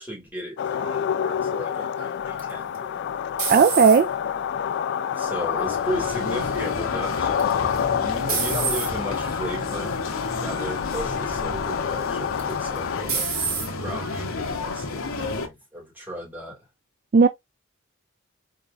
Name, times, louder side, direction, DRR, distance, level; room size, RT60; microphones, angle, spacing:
voice 1, 0.0-2.9 5.1-10.0 10.4-13.3 13.8-16.6, equal, 10° right, 2.8 m, -35 dB
sound 1, 0.6-13.0, left 8 dB, 55° left, 0.3 m, -28 dB
sound 2, 2.4-4.3 4.9-5.4 7.4-7.8 8.3-8.9 9.7-9.9 10.4-10.5 12.4-12.8 13.1-13.7, right 6 dB, 75° right, 2.2 m, -28 dB
voice 2, 3.5-4.1 17.1-17.3, right 5 dB, 45° right, 0.3 m, -15 dB
sound 3, 5.6-15.5, left 3 dB, 85° left, 0.9 m, -31 dB
4.1 x 3.8 x 2.6 m
head